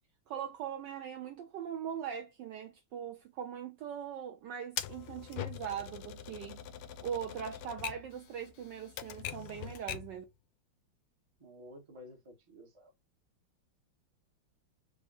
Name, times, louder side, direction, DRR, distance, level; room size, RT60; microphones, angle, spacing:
voice 1, 0.3-6.6 7.0-10.2, right 8 dB, 75° right, 1.0 m, -41 dB
Typewriter, 4.8-10.2, left 11 dB, 80° left, 1.4 m, -43 dB
voice 2, 11.4-12.9, left 1 dB, 30° right, 0.6 m, -52 dB
4.8 x 2.0 x 3.8 m
omnidirectional pair, 2.4 m